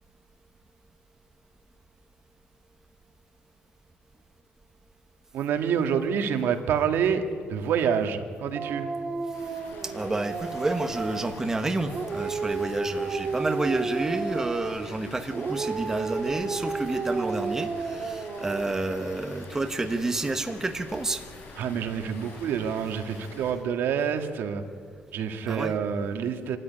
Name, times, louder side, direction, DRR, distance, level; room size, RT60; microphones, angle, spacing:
voice 1, 5.3-7.2 7.5-8.9 21.6-24.6 25.1-26.6, right 7 dB, 75° right, 6 dB, 1.8 m, -27 dB
Dog, 8.6-11.4 11.8-14.9 15.3-18.9, right 4 dB, 35° right, 1.8 m, -32 dB
Water, 9.3-23.5, left 3 dB, 75° left, 7.2 m, -47 dB
voice 2, 9.8-21.3 25.5-25.7, right 2 dB, 15° right, 6 dB, 1.1 m, -29 dB
26.5 x 13.5 x 9.9 m, 2.2 s
cardioid pair, 170°, 4 cm